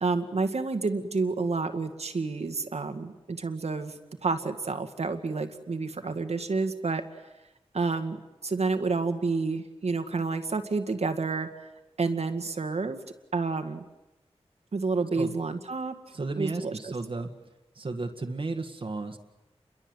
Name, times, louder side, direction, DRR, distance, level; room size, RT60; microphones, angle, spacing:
voice 1, 0.0-7.0 7.7-8.2 8.4-11.5 12.0-13.0 13.3-13.8 14.7-15.9 16.4-16.9, right 4 dB, 75° right, 8 dB, 2.1 m, -29 dB
voice 2, 16.1-17.3 17.8-19.2, right 3 dB, 55° right, 4 dB, 1.9 m, -33 dB
29.0 x 22.5 x 8.1 m, 1.0 s
wide cardioid pair, 95°, 11 cm